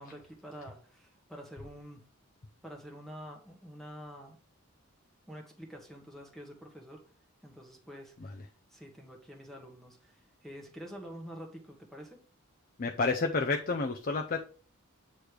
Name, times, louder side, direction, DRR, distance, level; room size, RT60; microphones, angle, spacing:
voice 1, 0.0-2.1 2.6-4.4 5.3-7.1 7.4-8.4 8.7-12.2, equal, ahead, 1.1 m, -47 dB
voice 2, 12.8-14.4, left 4 dB, 40° left, 0.5 m, -29 dB
8.3 x 3.1 x 4.9 m
head